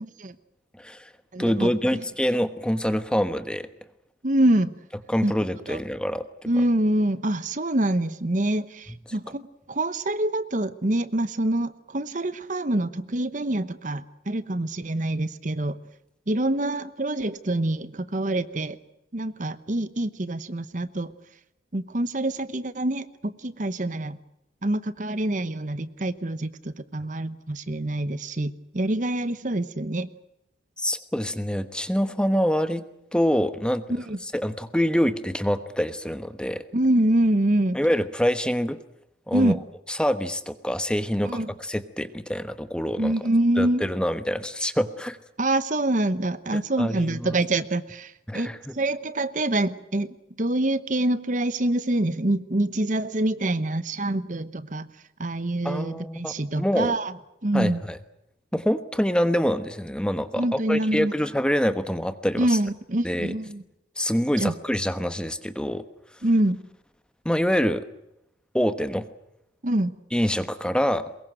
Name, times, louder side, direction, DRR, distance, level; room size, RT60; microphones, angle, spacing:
voice 1, 0.8-1.1 1.4-3.7 5.1-6.5 30.8-32.8 33.1-33.8 34.3-36.6 37.7-38.8 39.3-39.6 39.9-43.3 43.6-45.2 46.5-47.3 48.3-48.7 55.6-57.0 57.5-58.0 58.5-62.6 63.0-63.3 64.0-65.8 67.2-67.9 68.5-69.1 70.1-71.0, equal, 5° left, 11 dB, 1.1 m, -25 dB
voice 2, 1.3-2.0 4.2-4.7 5.2-5.3 5.7-5.8 6.5-15.8 16.3-18.8 19.1-21.1 21.7-24.2 24.6-30.1 33.9-34.2 36.7-37.8 39.3-39.6 41.2-41.5 43.0-43.8 45.4-50.1 50.4-54.9 55.2-57.1 57.4-57.8 60.4-61.1 62.4-63.6 64.4-64.5 66.2-66.6 69.6-70.0, right 1 dB, 45° right, 14 dB, 1.0 m, -25 dB
23.5 x 21.5 x 7.8 m, 0.85 s
head